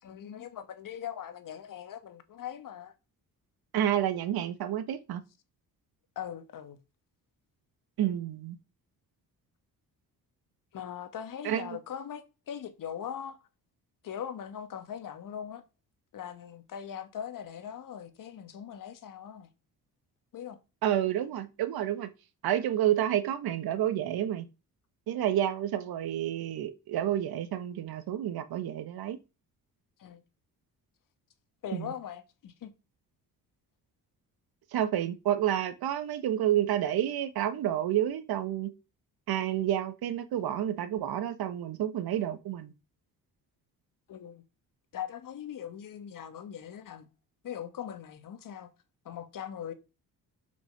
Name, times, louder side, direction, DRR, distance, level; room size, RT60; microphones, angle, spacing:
voice 1, 0.0-2.9 6.1-6.8 10.7-13.4 14.0-15.6 16.1-19.5 20.3-20.6 30.0-30.2 31.6-32.7 44.1-44.4 44.9-47.1 47.4-48.7 49.0-49.7, left 9 dB, 60° left, 1.6 m, -40 dB
voice 2, 3.7-5.2 8.0-8.6 11.4-11.8 20.8-22.1 22.4-24.5 25.1-29.2 31.7-31.9 34.7-38.7 39.3-42.7, right 11 dB, 80° right, 1.4 m, -29 dB
7.7 x 5.3 x 6.7 m
cardioid pair, 135°, 36 cm